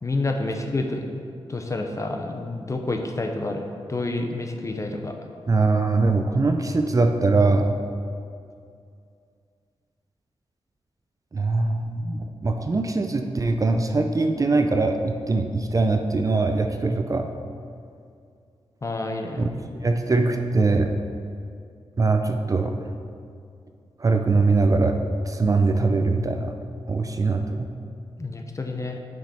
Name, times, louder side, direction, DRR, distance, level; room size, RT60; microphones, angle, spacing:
voice 1, 0.0-1.0 1.5-3.6 3.9-5.1 18.8-19.5 28.2-29.0, left 2 dB, 30° left, 4 dB, 0.6 m, -28 dB
voice 2, 5.5-7.8 11.3-17.3 19.4-19.5 19.8-20.9 22.0-22.9 24.0-26.5 26.9-27.7, right 3 dB, 35° right, 6 dB, 0.4 m, -22 dB
6.1 x 5.3 x 4.2 m, 2.4 s
cardioid pair, 75°, 10 cm